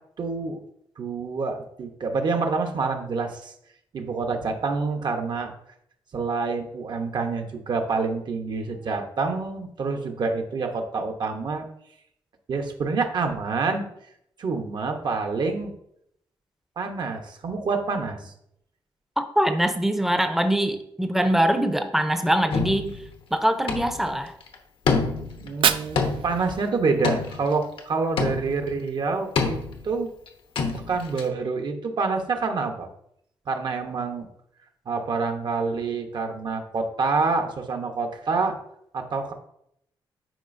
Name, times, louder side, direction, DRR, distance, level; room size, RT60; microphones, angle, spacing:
voice 1, 0.2-0.6 1.0-3.5 3.9-5.5 6.1-11.6 12.5-13.8 14.4-15.7 16.8-18.3 25.4-29.6 29.8-30.1 30.9-32.9 33.5-34.3 34.9-38.6 38.9-39.3, right 4 dB, 55° right, 5 dB, 1.0 m, -27 dB
voice 2, 19.2-23.0 23.3-24.3, right 1 dB, 5° right, 8 dB, 0.6 m, -23 dB
sound 1, 22.5-23.1 23.7-24.1 24.4-24.6 24.9-25.5 26.0-26.5 27.0-27.8 28.2-28.7 29.4-29.9 30.3-30.4 30.6-31.2, left 4 dB, 75° left, 0.9 m, -27 dB
Fire, 25.3-27.3, right 8 dB, 70° right, 0.4 m, -28 dB
9.1 x 4.7 x 2.6 m, 0.74 s
cardioid pair, 105°, 9 cm